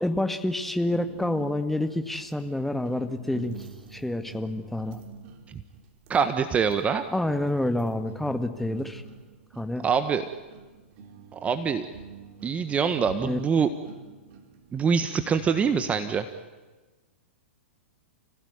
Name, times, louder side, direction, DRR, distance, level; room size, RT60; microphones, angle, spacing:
voice 1, 0.0-5.0 7.1-9.0 9.6-9.9 13.2-13.4, left 1 dB, 5° left, 7 dB, 1.9 m, -28 dB
sound 1, 0.9-16.4, right 6 dB, 45° right, 3.6 m, -46 dB
voice 2, 6.1-7.0 9.8-10.2 11.3-11.9 12.4-13.7 14.7-16.3, right 6 dB, 20° right, 9 dB, 1.4 m, -24 dB
30.0 x 17.0 x 9.7 m, 1.3 s
figure-of-eight pair, 110°, 7 cm